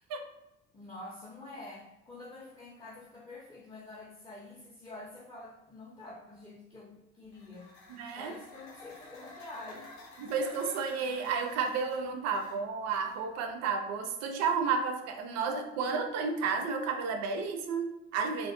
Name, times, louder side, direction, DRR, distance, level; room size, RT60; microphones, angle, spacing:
voice 1, 0.7-7.7 8.1-10.1, left 2 dB, 10° left, -5 dB, 0.5 m, -47 dB
sound 1, 7.3-13.4, left 2 dB, 65° left, 0.6 m, -53 dB
voice 2, 7.9-8.3 10.2-18.5, right 5 dB, 50° right, 5 dB, 0.4 m, -32 dB
2.2 x 2.2 x 2.4 m, 0.92 s
figure-of-eight pair, 50°, 34 cm